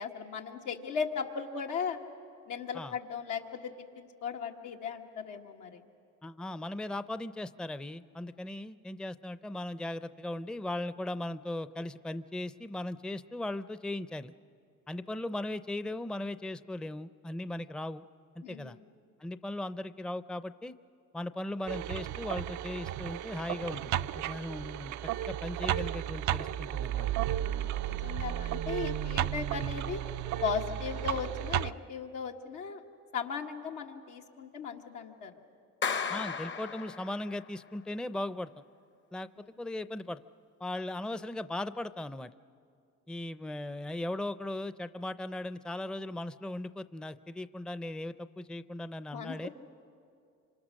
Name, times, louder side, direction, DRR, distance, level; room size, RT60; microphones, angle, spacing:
voice 1, 0.0-2.0 2.5-5.8 18.4-18.9 27.3-30.0 30.4-32.8 33.1-35.3 39.4-39.5 49.1-49.5, left 6 dB, 90° left, 1 dB, 1.8 m, -37 dB
voice 2, 6.2-14.3 14.9-18.0 18.4-18.8 19.2-20.7 21.1-24.9 25.3-27.1 36.1-38.5 39.1-39.3 39.6-40.2 40.6-42.3 43.1-49.5, left 1 dB, 5° left, 13 dB, 0.5 m, -38 dB
sound 1, 21.7-31.7, right 12 dB, 75° right, 0.5 m, -33 dB
Clapping, 35.8-37.5, left 6 dB, 40° left, 0.8 m, -35 dB
26.0 x 26.0 x 6.5 m, 2.4 s
cardioid pair, 90°, 30 cm